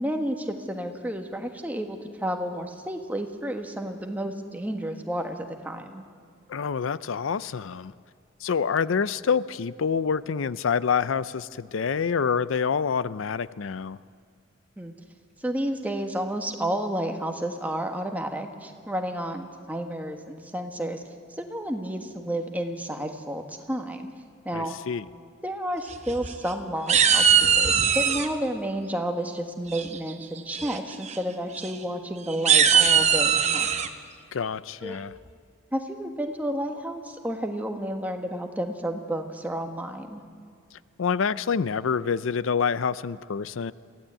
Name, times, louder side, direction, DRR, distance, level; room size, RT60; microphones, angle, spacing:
voice 1, 0.0-6.0 14.8-14.9 15.4-21.0 21.4-24.1 24.4-24.7 25.4-33.7 34.8-35.0 35.7-40.2, right 1 dB, 10° right, 4 dB, 1.5 m, -31 dB
voice 2, 6.5-7.9 8.4-14.0 24.5-25.1 34.3-35.1 41.0-43.7, left 6 dB, 75° left, 17 dB, 0.5 m, -27 dB
sound 1, 25.9-26.5 26.9-28.3 29.7-30.1 30.5-30.8 31.0-31.2 31.6-31.7 32.3-33.9, right 7 dB, 35° right, 1.0 m, -20 dB
23.0 x 16.0 x 8.8 m, 2.1 s
head